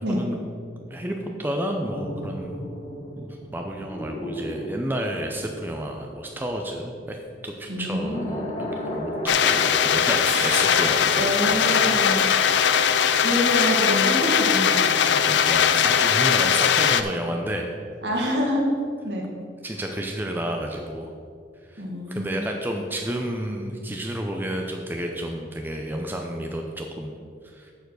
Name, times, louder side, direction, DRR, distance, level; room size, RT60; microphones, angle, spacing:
voice 1, 0.1-0.6 0.9-2.6 3.2-7.2 7.4-8.5 8.8-12.0 12.8-12.9 15.3-17.8 19.6-21.1 21.7-27.2 27.4-27.7, right 1 dB, 10° right, 2 dB, 0.5 m, -31 dB
sound 1, 1.8-6.9 7.8-11.8 12.0-12.3, equal, 30° left, 1.3 m, -35 dB
voice 2, 7.7-8.3 11.2-12.3 13.0-15.3 18.0-18.6 19.0-19.2 21.8-22.5, equal, 65° right, -1 dB, 1.8 m, -27 dB
sound 2, 9.3-17.0, left 7 dB, 75° left, 0.5 m, -20 dB
sound 3, 10.2-12.6, right 2 dB, 35° right, 1.4 m, -37 dB
7.0 x 6.9 x 6.2 m, 2.3 s
head